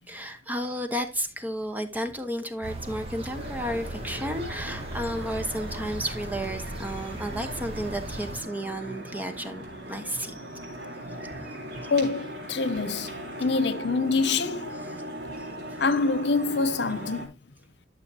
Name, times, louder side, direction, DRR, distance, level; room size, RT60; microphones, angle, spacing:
voice 1, 0.1-10.3 11.2-11.4 14.9-15.0 15.4-15.5, equal, 10° right, 1.0 m, -32 dB
sound 1, 2.6-8.4, right 1 dB, 35° right, 1.5 m, -38 dB
sound 2, 3.3-17.3, right 1 dB, 70° right, 3.6 m, -39 dB
voice 2, 11.8-14.7 15.8-17.3, left 4 dB, 65° left, 0.7 m, -26 dB
12.0 x 6.9 x 2.8 m
head